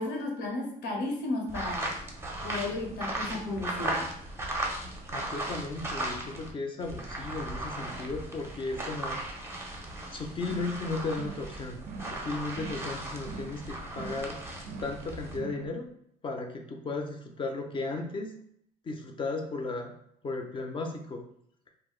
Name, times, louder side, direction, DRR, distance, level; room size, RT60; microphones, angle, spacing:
voice 1, 0.0-2.0 2.4-4.1, left 2 dB, 85° left, 0 dB, 0.8 m, -33 dB
sound 1, 1.5-6.5 6.8-15.4, right 1 dB, 15° right, 0.6 m, -37 dB
voice 2, 5.1-9.2 9.5-9.7 10.1-14.4 14.8-15.8 16.2-18.3 18.8-19.9 20.2-21.2, left 3 dB, 30° left, 3 dB, 0.5 m, -35 dB
sound 2, 10.4-10.8 11.1-11.5 11.8-12.2 12.5-12.9 13.2-13.6 13.9-14.3 14.6-15.0 15.3-15.7, right 5 dB, 60° right, 0.4 m, -43 dB
2.5 x 2.0 x 3.6 m, 0.70 s
cardioid pair, 110°, 17 cm